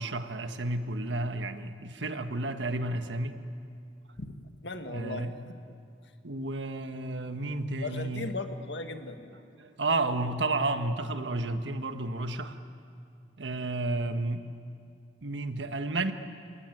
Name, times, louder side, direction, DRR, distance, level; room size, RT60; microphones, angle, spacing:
voice 1, 0.0-3.4 4.9-5.3 6.2-8.3 9.6-12.6 13.4-14.5 15.2-16.1, right 2 dB, 85° right, 8 dB, 1.4 m, -31 dB
voice 2, 4.2-5.3 7.8-9.6, left 2 dB, 75° left, 6 dB, 1.7 m, -38 dB
30.0 x 17.5 x 9.2 m, 2.4 s
head